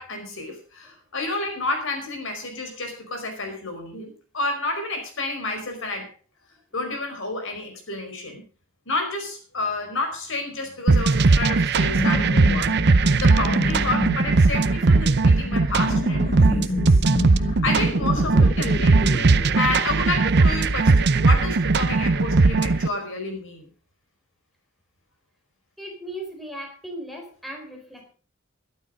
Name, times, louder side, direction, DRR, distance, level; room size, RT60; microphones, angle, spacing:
voice 1, 0.0-6.1 6.7-8.4 8.8-12.7 13.1-17.0 17.4-23.7, left 2 dB, 65° left, 5 dB, 5.1 m, -30 dB
sound 1, 10.9-22.9, right 3 dB, 55° right, 0.7 m, -19 dB
sound 2, 11.8-19.6, left 2 dB, 30° left, 0.6 m, -30 dB
voice 2, 25.8-28.1, right 1 dB, ahead, 1 dB, 4.2 m, -37 dB
13.0 x 12.0 x 5.2 m, 0.37 s
head